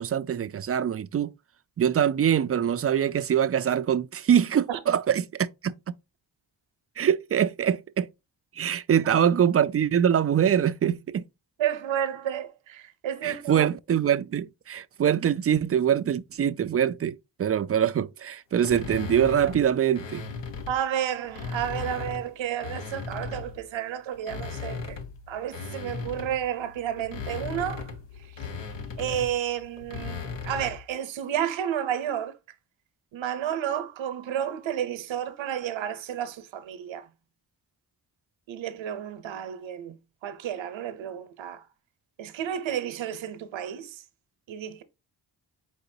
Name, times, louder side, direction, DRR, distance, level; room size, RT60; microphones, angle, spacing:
voice 1, 0.0-1.3 1.8-5.2 5.6-5.9 7.0-8.1 8.6-11.2 13.2-20.2, right 9 dB, 35° right, 0.4 m, -24 dB
voice 2, 11.6-13.7 20.7-25.0 25.3-27.9 29.0-32.3 33.1-37.1 38.5-41.6 42.2-44.0 44.5-44.8, right 10 dB, 85° right, 0.8 m, -31 dB
sound 1, 18.6-20.8 21.2-23.6 24.1-30.9, left 5 dB, 70° left, 1.0 m, -37 dB
4.6 x 3.9 x 2.7 m
cardioid pair, 50°, 45 cm